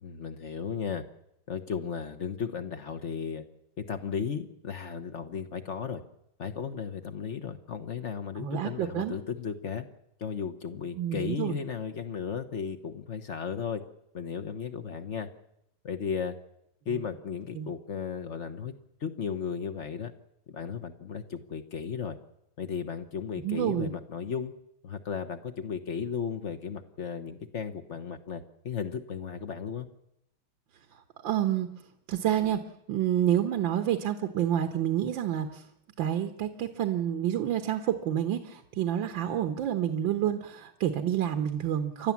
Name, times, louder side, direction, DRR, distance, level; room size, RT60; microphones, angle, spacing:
voice 1, 0.0-1.0 1.5-3.4 3.8-6.0 6.4-9.8 10.2-13.8 14.1-15.3 15.8-16.4 16.9-18.7 19.0-20.1 20.5-22.2 22.6-24.5 24.8-29.9, left 6 dB, 45° left, 7 dB, 1.0 m, -35 dB
voice 2, 8.4-9.1 11.0-11.6 17.5-17.7 23.4-23.9 31.2-31.7 32.1-32.6 32.9-35.6 36.0-42.1, right 10 dB, 70° right, 7 dB, 1.7 m, -28 dB
29.0 x 12.5 x 7.2 m, 0.79 s
omnidirectional pair, 2.2 m